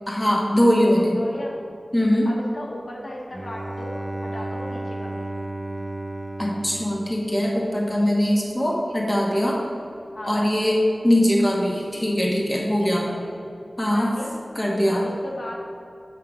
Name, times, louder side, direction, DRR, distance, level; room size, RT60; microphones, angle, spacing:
voice 1, 0.1-1.2 1.9-2.3 6.4-9.6 10.2-10.8 11.0-13.1 13.8-14.1 14.5-15.1, equal, 20° left, -2 dB, 1.4 m, -21 dB
voice 2, 1.1-1.5 2.2-5.3 10.1-10.5 12.8-13.3 13.8-14.4 14.9-15.5, left 1 dB, 70° left, -3 dB, 1.5 m, -36 dB
Bowed string instrument, 3.3-8.0, right 1 dB, 20° right, 0.5 m, -33 dB
8.3 x 5.7 x 4.9 m, 2.6 s
wide cardioid pair, 65°, 0 cm